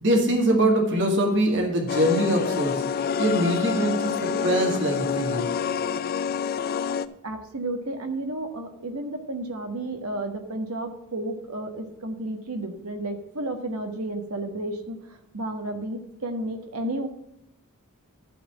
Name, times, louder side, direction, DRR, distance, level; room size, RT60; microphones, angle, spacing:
voice 1, 0.0-2.8 3.2-5.5, right 1 dB, 60° right, 1 dB, 2.0 m, -23 dB
sound 1, 1.9-7.1, left 7 dB, 45° left, 0.4 m, -27 dB
voice 2, 7.2-17.1, right 1 dB, 75° right, 5 dB, 1.4 m, -32 dB
12.0 x 4.3 x 7.2 m, 0.84 s
head